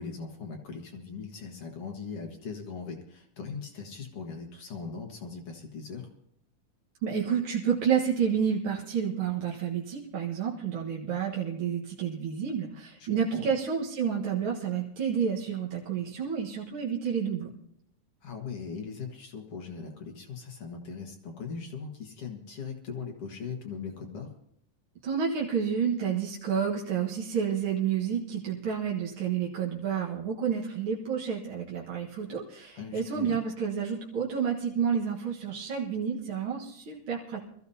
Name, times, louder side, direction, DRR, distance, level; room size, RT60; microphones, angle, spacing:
voice 1, 0.0-6.1 13.0-13.5 18.2-24.3 32.8-33.4, left 5 dB, 50° left, 1 dB, 2.1 m, -40 dB
voice 2, 7.0-17.5 25.0-37.4, right 7 dB, 50° right, -4 dB, 1.7 m, -30 dB
24.0 x 14.5 x 2.8 m, 0.73 s
omnidirectional pair, 4.0 m